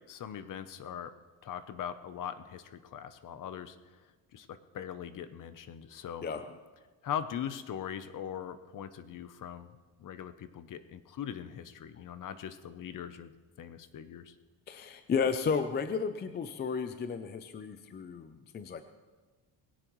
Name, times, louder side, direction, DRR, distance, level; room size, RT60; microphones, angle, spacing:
voice 1, 0.1-1.1 1.4-3.8 4.3-6.2 7.0-9.7 10.0-13.3 13.6-14.3, left 9 dB, 45° left, 12 dB, 0.7 m, -41 dB
voice 2, 6.2-6.6 14.7-18.8, left 6 dB, 25° left, 9 dB, 0.4 m, -33 dB
20.5 x 17.0 x 3.1 m, 1.3 s
cardioid pair, 180°, 44 cm